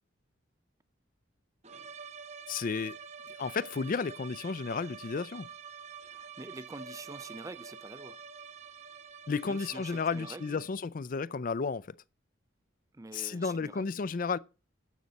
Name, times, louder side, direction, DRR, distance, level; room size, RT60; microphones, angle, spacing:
sound 1, 1.6-10.8, right 6 dB, 35° right, 0.9 m, -47 dB
voice 1, 2.5-3.0 3.4-5.5 9.3-12.0 13.1-14.4, left 5 dB, 45° left, 0.4 m, -33 dB
voice 2, 6.1-8.2 9.5-10.6 12.9-14.0, right 2 dB, 15° right, 0.4 m, -46 dB
12.5 x 7.7 x 4.1 m
head